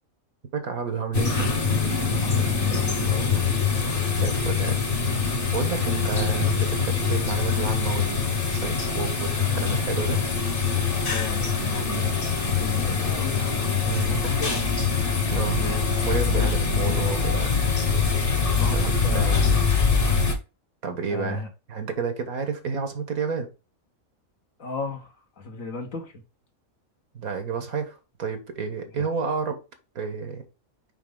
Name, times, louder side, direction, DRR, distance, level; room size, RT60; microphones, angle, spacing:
voice 1, 0.5-1.6 4.1-4.8 5.5-8.2 8.5-10.2 13.8-14.2 15.3-15.7 16.0-17.6 18.7-19.7 20.8-23.5 27.1-29.6 30.0-30.4, right 5 dB, 85° right, 1.9 m, -30 dB
sound 1, 1.1-20.3, left 5 dB, 40° left, 1.6 m, -24 dB
voice 2, 2.2-3.4 11.1-13.4 14.0-14.5 15.5-15.8 16.4-16.5 17.3-17.5 17.8-17.9 18.5-19.3 21.1-21.5 24.6-26.1 29.0-29.1, left 4 dB, 65° left, 1.9 m, -35 dB
5.9 x 5.2 x 3.6 m
omnidirectional pair, 1.5 m